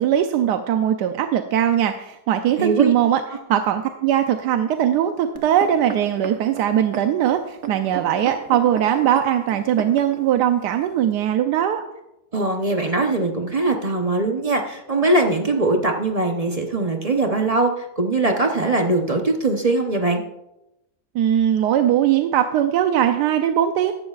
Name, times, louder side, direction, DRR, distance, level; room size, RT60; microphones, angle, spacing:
voice 1, 0.0-3.2 3.5-11.8 21.1-23.9, right 10 dB, 85° right, 7 dB, 1.2 m, -20 dB
voice 2, 2.6-2.9 12.3-20.2, right 2 dB, 35° right, 3 dB, 0.7 m, -21 dB
sound 1, 5.4-10.2 10.9-11.0, right 7 dB, 55° right, 1.3 m, -34 dB
14.5 x 12.0 x 2.4 m, 0.90 s
omnidirectional pair, 1.7 m